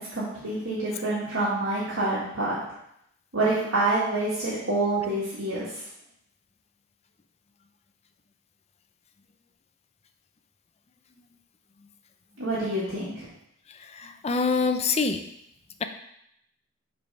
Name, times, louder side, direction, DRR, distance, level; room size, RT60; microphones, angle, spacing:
voice 1, 0.1-2.6 3.3-5.8 12.4-13.3, right 2 dB, 80° right, -9 dB, 1.8 m, -27 dB
voice 2, 13.9-15.2, left 4 dB, 30° left, 7 dB, 0.5 m, -25 dB
6.9 x 3.5 x 5.3 m, 0.76 s
head